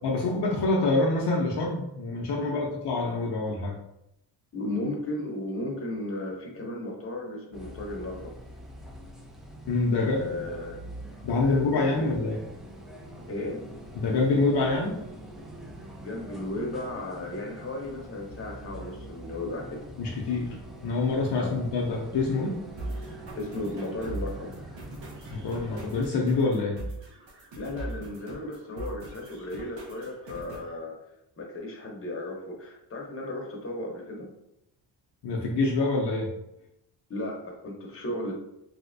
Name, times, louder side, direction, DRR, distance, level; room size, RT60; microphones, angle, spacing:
voice 1, 0.0-3.8 9.7-10.3 11.2-12.4 13.9-15.0 20.0-20.6 20.8-22.6 25.3-26.8 35.2-36.3, left 3 dB, 65° left, -2 dB, 0.7 m, -26 dB
voice 2, 4.5-8.3 10.0-10.8 11.4-12.1 13.3-13.6 16.0-19.8 21.4-21.6 23.4-24.5 27.6-30.9 31.4-34.3 37.1-38.3, left 1 dB, 30° left, 0 dB, 0.9 m, -35 dB
sound 1, 7.5-26.0, right 1 dB, ahead, 0.4 m, -44 dB
sound 2, 22.8-30.8, right 1 dB, 90° right, 1.1 m, -40 dB
3.3 x 2.8 x 2.6 m, 0.83 s
cardioid pair, 90°, 44 cm